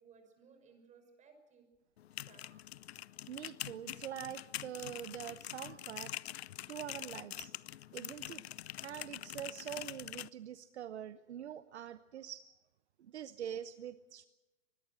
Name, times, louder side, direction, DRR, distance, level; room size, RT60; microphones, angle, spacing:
voice 1, 0.0-1.7 2.1-2.5, right 5 dB, 20° right, 6 dB, 6.0 m, -62 dB
sound 1, 2.0-10.3, left 13 dB, 55° left, 0.7 m, -45 dB
voice 2, 3.3-6.1 6.7-7.5 7.9-8.4 8.8-12.5 13.0-14.2, right 10 dB, 60° right, 13 dB, 1.0 m, -44 dB
24.0 x 21.0 x 6.4 m, 1.1 s
figure-of-eight pair, 120°, 37 cm